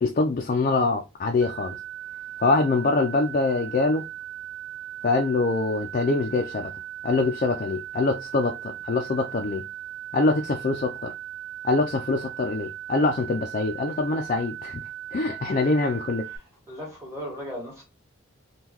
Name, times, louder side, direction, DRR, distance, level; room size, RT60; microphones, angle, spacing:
voice 1, 0.0-1.8 2.4-4.1 5.0-6.7 7.0-9.6 10.1-11.1 11.6-14.8 15.1-16.2, left 3 dB, 45° left, 0.4 m, -24 dB
sound 1, 1.4-16.4, right 13 dB, 75° right, 1.2 m, -38 dB
voice 2, 15.5-15.9 16.2-17.8, equal, 15° right, 1.5 m, -38 dB
3.6 x 2.3 x 2.9 m
head